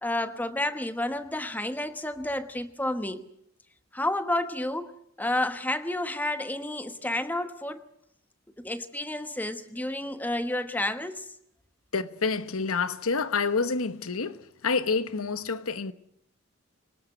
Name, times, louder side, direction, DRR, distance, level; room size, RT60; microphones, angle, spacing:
voice 1, 0.0-3.3 3.9-7.8 8.6-11.3, left 1 dB, 10° left, 1.2 m, -30 dB
voice 2, 11.9-15.9, left 4 dB, 80° left, 1.1 m, -28 dB
26.5 x 19.5 x 8.0 m
head